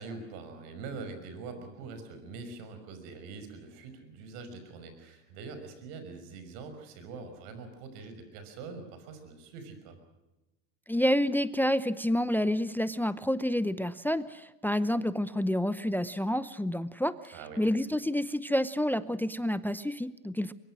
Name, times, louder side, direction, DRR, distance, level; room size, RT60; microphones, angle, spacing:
voice 1, 0.0-10.0 17.3-17.7, right 4 dB, 75° right, 8 dB, 6.0 m, -44 dB
voice 2, 10.9-20.5, left 1 dB, 5° left, 15 dB, 0.7 m, -29 dB
24.0 x 22.5 x 6.3 m, 1.0 s
supercardioid pair, 100°, 47 cm